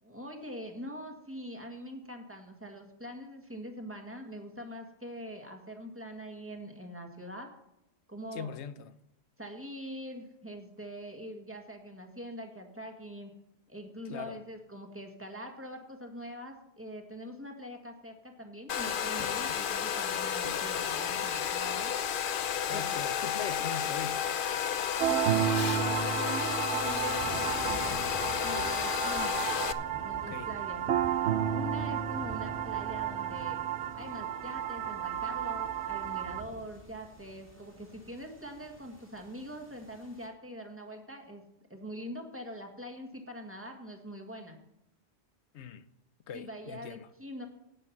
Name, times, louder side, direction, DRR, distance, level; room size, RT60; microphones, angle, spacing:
voice 1, 0.0-7.5 8.1-8.5 9.4-13.3 13.7-21.9 22.7-23.0 25.1-25.2 25.6-29.5 30.0-30.9 31.5-33.6 33.9-41.4 41.7-44.6 46.3-47.5, equal, 10° right, 1.8 m, -43 dB
voice 2, 8.3-8.9 14.1-14.4 22.7-24.2 30.3-30.5 45.5-45.9 46.3-47.1, left 8 dB, 90° left, 1.0 m, -40 dB
Domestic sounds home sounds, 18.7-29.7, left 8 dB, 60° left, 0.7 m, -32 dB
sound 1, 21.9-40.3, right 1 dB, 55° right, 3.6 m, -49 dB
sound 2, 25.0-36.4, right 10 dB, 90° right, 0.9 m, -32 dB
10.0 x 8.9 x 5.9 m
omnidirectional pair, 1.1 m